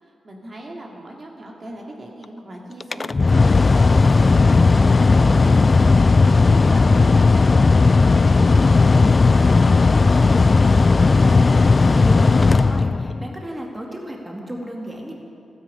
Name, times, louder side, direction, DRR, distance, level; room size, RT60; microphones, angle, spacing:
voice 1, 0.0-10.4 10.8-11.4, right 1 dB, 45° right, -1 dB, 2.3 m, -39 dB
Mechanical fan, 2.8-13.3, left 3 dB, 40° left, 0.3 m, -15 dB
voice 2, 11.9-15.1, right 1 dB, 15° right, 0 dB, 2.4 m, -33 dB
13.0 x 9.5 x 8.7 m, 2.6 s
cardioid pair, 55°, 0 cm